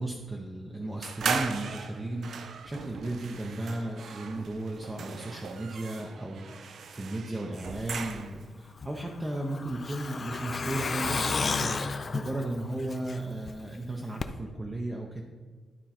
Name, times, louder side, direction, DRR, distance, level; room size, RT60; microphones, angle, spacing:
voice 1, 0.0-15.2, right 1 dB, 15° right, -1 dB, 0.6 m, -35 dB
sound 1, 1.0-8.5, right 6 dB, 55° right, 0.5 m, -37 dB
Truck, 8.8-13.5 13.8-13.9 14.2-14.3, left 4 dB, 30° left, 0.4 m, -32 dB
11.5 x 4.4 x 4.3 m, 1.5 s
wide cardioid pair, 165°, 0 cm